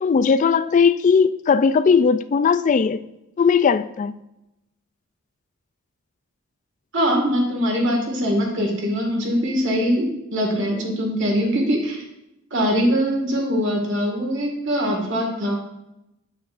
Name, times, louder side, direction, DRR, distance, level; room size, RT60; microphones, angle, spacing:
voice 1, 0.0-3.1 3.4-4.1, left 5 dB, 35° left, 0.3 m, -18 dB
voice 2, 6.9-12.0 12.5-15.6, equal, 60° right, 1.9 m, -22 dB
8.6 x 8.3 x 2.5 m
head